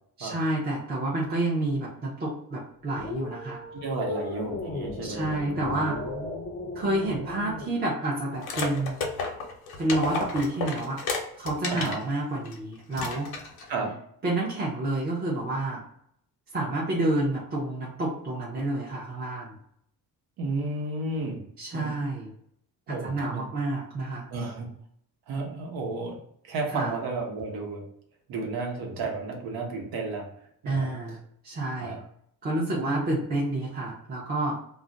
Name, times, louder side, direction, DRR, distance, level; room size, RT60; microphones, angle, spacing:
voice 1, 0.2-3.6 5.0-6.0 6.7-9.0 9.8-11.0 11.4-13.3 14.2-15.8 16.5-19.6 21.6-22.3 22.9-24.3 26.7-26.9 30.7-31.2 31.4-32.0 32.4-34.6, right 2 dB, 25° right, -4 dB, 0.5 m, -29 dB
sound 1, 2.9-7.7, left 3 dB, 30° left, 0.5 m, -37 dB
voice 2, 3.7-6.4 11.7-12.0 13.7-14.0 20.4-21.4 21.7-21.9 22.9-23.5 24.3-24.7 25.3-26.2 26.4-27.8 28.3-30.3 30.6-30.9 31.8-32.0 32.6-33.1, right 3 dB, 85° right, 1 dB, 0.9 m, -32 dB
sound 2, 8.4-12.0 12.5-12.6 12.9-13.7, left 4 dB, 80° left, 0.8 m, -32 dB
2.4 x 2.1 x 3.7 m, 0.68 s
cardioid pair, 150°, 36 cm